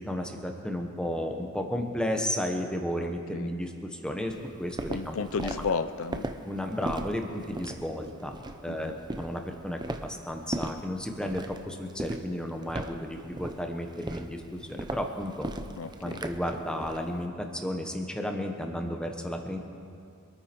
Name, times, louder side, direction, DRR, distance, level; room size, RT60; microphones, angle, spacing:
voice 1, 0.0-4.3 4.6-5.2 6.5-8.3 8.6-15.5 16.0-19.6, equal, 5° left, 3 dB, 1.1 m, -33 dB
voice 2, 3.0-3.5 4.9-6.3 8.6-9.0 15.8-16.2, left 5 dB, 70° left, 11 dB, 0.5 m, -33 dB
Walk footsteps, 4.3-17.1, right 2 dB, 20° right, 0.6 m, -38 dB
25.0 x 9.4 x 4.5 m, 2.4 s
head